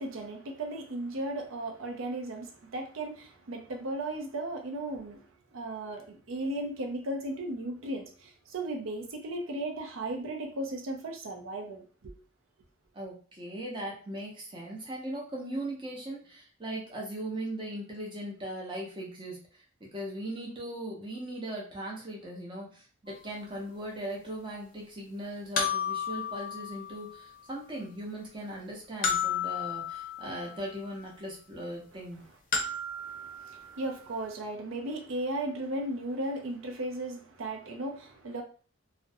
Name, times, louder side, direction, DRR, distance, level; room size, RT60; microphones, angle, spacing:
voice 1, 0.0-5.2 5.5-12.1 32.6-38.4, right 1 dB, 75° right, 0.5 m, -36 dB
voice 2, 12.9-32.2, right 1 dB, 25° right, 0.7 m, -39 dB
sound 1, 23.1-23.2 25.6-27.4 29.0-30.7 32.5-34.0, left 6 dB, 45° left, 0.5 m, -33 dB
2.5 x 2.1 x 2.6 m
head